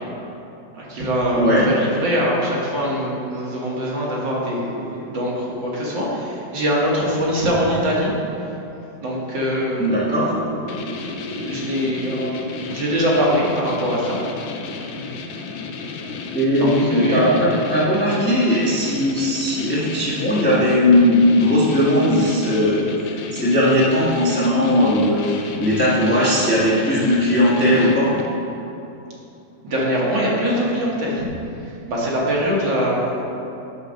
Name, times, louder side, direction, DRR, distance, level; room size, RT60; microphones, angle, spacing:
voice 1, 0.8-8.1 9.0-10.4 10.7-12.4 12.7-14.2 16.5-17.3 29.6-31.3 31.9-33.2, equal, 70° right, -5 dB, 2.1 m, -23 dB
voice 2, 1.3-1.7 9.8-10.3 16.3-22.8 23.3-28.1, left 1 dB, 5° left, -8 dB, 1.2 m, -18 dB
sound 1, 10.7-28.4, left 4 dB, 80° left, 1.4 m, -33 dB
6.6 x 4.8 x 6.3 m, 2.8 s
omnidirectional pair, 2.1 m